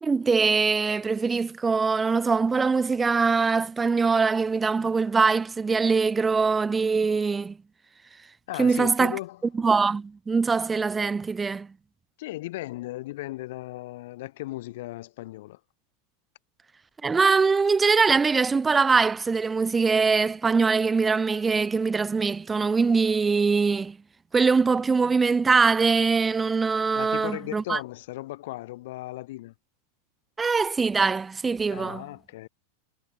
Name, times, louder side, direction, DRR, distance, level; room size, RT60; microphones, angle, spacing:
voice 1, 0.0-7.6 8.6-9.2 9.6-11.7 17.0-24.0 24.3-27.8 30.4-32.0, right 4 dB, 15° right, 0.3 m, -22 dB
voice 2, 8.5-9.4 12.2-15.6 26.9-29.5 31.7-32.5, left 17 dB, 55° left, 2.8 m, -36 dB
figure-of-eight pair, 90°, 0 cm